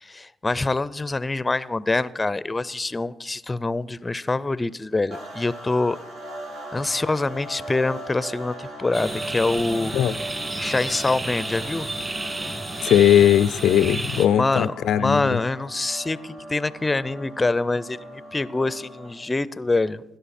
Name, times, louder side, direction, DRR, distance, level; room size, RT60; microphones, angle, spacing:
voice 1, 0.0-6.0 6.7-9.9 10.6-11.9 14.4-14.7 15.0-20.0, left 2 dB, 20° left, 0.5 m, -25 dB
sound 1, 5.1-19.3, right 1 dB, 90° right, 3.8 m, -39 dB
sound 2, 8.9-14.3, right 2 dB, 30° right, 2.1 m, -31 dB
voice 2, 12.8-15.4, left 10 dB, 75° left, 0.3 m, -19 dB
17.0 x 11.5 x 4.2 m
cardioid pair, 90°, 0 cm